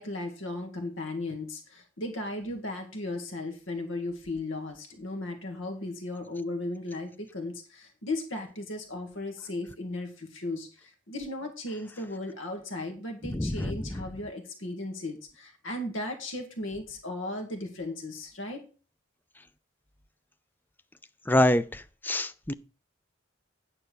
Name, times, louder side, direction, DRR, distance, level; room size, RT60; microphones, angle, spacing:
voice 1, 0.0-18.6, left 2 dB, 80° left, 4 dB, 1.8 m, -36 dB
voice 2, 13.3-13.8 21.3-21.6 22.0-22.5, left 1 dB, 10° left, 12 dB, 0.4 m, -24 dB
9.5 x 4.3 x 6.7 m, 0.35 s
head